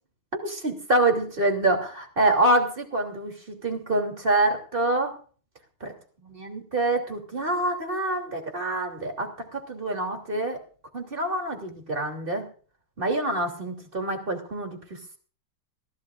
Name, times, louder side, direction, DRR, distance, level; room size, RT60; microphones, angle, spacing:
voice 1, 0.4-5.1 5.8-5.9 6.3-10.6 10.9-12.5 13.0-15.2, right 2 dB, 25° right, 3 dB, 3.2 m, -26 dB
23.0 x 16.5 x 2.5 m, 0.40 s
omnidirectional pair, 2.4 m